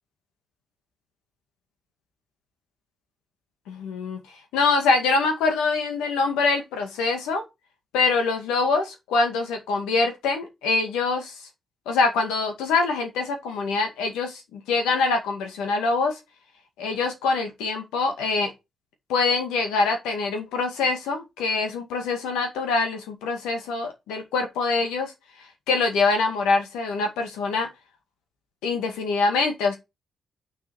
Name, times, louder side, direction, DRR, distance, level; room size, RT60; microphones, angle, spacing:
voice 1, 3.7-4.2 4.5-7.4 7.9-11.5 11.9-16.1 16.8-18.5 19.1-25.1 25.7-27.7 28.6-29.8, left 4 dB, 80° left, 2.1 m, -24 dB
7.0 x 6.0 x 4.8 m
hypercardioid pair, 45°, 0 cm